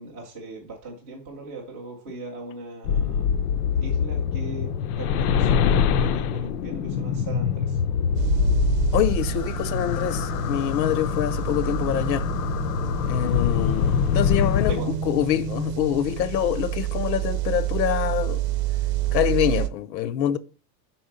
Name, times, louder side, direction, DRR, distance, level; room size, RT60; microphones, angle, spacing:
voice 1, 0.0-3.3 3.8-4.7 5.0-7.8 14.7-14.9, right 2 dB, 10° right, 0.4 m, -38 dB
sound 1, 2.8-14.7, left 7 dB, 65° left, 0.6 m, -24 dB
sound 2, 8.1-19.7, right 12 dB, 75° right, 0.7 m, -29 dB
voice 2, 8.9-12.3 13.1-18.5 19.1-20.4, left 12 dB, 90° left, 0.8 m, -25 dB
sound 3, 9.9-19.5, right 5 dB, 35° right, 0.8 m, -39 dB
5.6 x 4.3 x 5.1 m
supercardioid pair, 180°, 50 cm